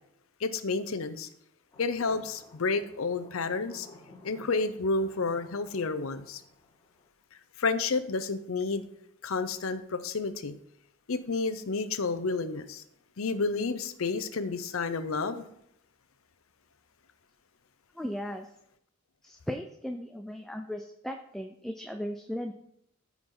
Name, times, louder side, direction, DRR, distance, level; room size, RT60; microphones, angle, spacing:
voice 1, 0.4-1.3 1.8-3.9 4.2-6.4 7.6-8.8 9.2-10.6 11.1-12.8 13.2-15.4, left 4 dB, 80° left, 0.7 m, -30 dB
sound 1, 1.7-7.1, left 2 dB, 20° left, 3.7 m, -54 dB
voice 2, 17.9-18.5 19.2-22.5, equal, ahead, 0.4 m, -37 dB
14.0 x 4.8 x 3.8 m
head